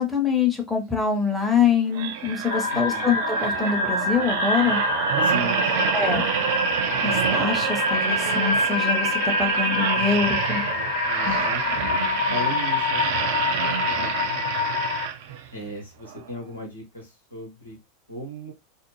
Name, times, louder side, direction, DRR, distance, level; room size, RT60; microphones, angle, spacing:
voice 1, 0.0-4.8 5.9-6.2 7.0-9.1 9.4-10.6 11.2-11.4, left 6 dB, 5° left, 1 dB, 0.8 m, -24 dB
sound 1, 1.9-15.5 16.1-16.2, right 8 dB, 55° right, 0.5 m, -27 dB
sound 2, 2.5-15.1, left 4 dB, 50° left, 0.4 m, -26 dB
voice 2, 2.7-3.2 5.2-6.5 11.0-13.3 13.5-14.4 15.5-17.8 18.1-18.5, equal, 85° left, 0 dB, 1.0 m, -37 dB
2.5 x 2.0 x 3.1 m, 0.23 s
figure-of-eight pair, 85°, 0 cm